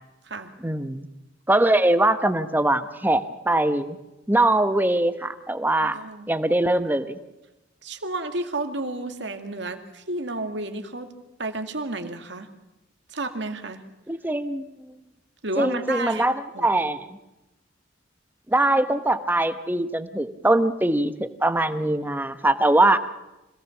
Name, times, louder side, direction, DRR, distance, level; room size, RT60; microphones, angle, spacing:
voice 1, 0.6-1.1 1.5-4.0 4.3-6.0 6.3-7.2 14.1-14.7 15.6-17.1 18.5-23.0, right 1 dB, 10° right, 10 dB, 1.0 m, -22 dB
voice 2, 5.8-6.3 7.8-11.1 11.4-12.5 13.1-13.8 15.4-16.3 16.5-16.7, right 2 dB, 65° right, 6 dB, 2.2 m, -31 dB
25.0 x 17.5 x 7.2 m, 0.98 s
head